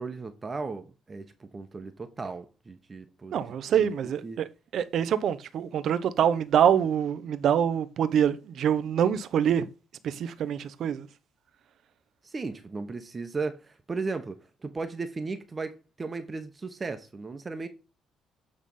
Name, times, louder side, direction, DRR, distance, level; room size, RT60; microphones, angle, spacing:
voice 1, 0.0-3.4 3.8-3.9 4.2-4.4 12.2-17.7, right 4 dB, 30° right, 1.2 m, -36 dB
voice 2, 3.3-4.5 4.7-9.7 10.0-11.1, right 9 dB, 65° right, 0.8 m, -25 dB
8.6 x 3.7 x 5.4 m
cardioid pair, 80°, 0 cm